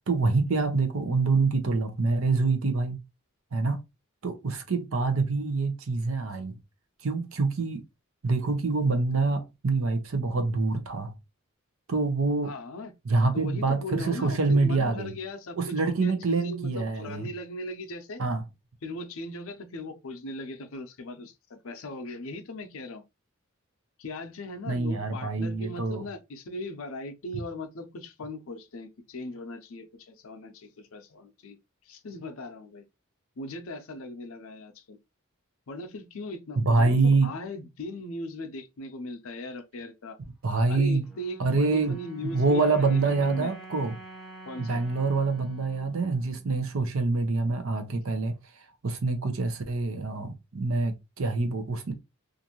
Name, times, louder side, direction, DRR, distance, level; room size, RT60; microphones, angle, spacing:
voice 1, 0.0-3.0 3.5-3.8 4.2-6.6 7.0-7.8 8.2-11.1 11.9-12.5 13.1-15.1 15.6-17.3 18.2-18.4 24.7-26.0 36.6-37.3 40.4-41.1 41.4-42.0 42.2-43.9 44.6-48.3 48.8-51.9, right 3 dB, 70° right, 0.6 m, -26 dB
voice 2, 12.4-12.9 13.3-15.6 15.8-18.2 18.8-23.0 24.0-31.6 31.9-32.8 33.4-35.0 35.7-40.2 40.7-43.5 44.4-44.8, left 1 dB, 70° left, 0.6 m, -39 dB
sound 1, 41.0-47.4, right 2 dB, ahead, 0.7 m, -48 dB
2.5 x 2.5 x 2.8 m
head